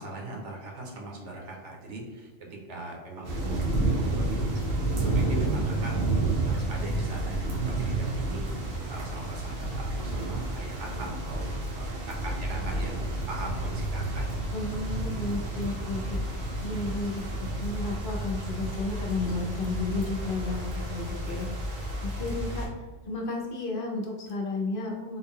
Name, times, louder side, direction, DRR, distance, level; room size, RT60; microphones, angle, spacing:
voice 1, 0.0-4.6 5.0-6.0 6.4-8.4 8.8-11.4 11.7-14.4 21.2-21.5, right 2 dB, 65° right, -1 dB, 1.1 m, -40 dB
sound 1, 3.2-22.7, right 2 dB, 85° right, 1.3 m, -30 dB
voice 2, 14.5-22.7 23.1-25.2, left 3 dB, 60° left, 0 dB, 0.6 m, -33 dB
3.7 x 2.2 x 3.5 m, 1.3 s
omnidirectional pair, 1.3 m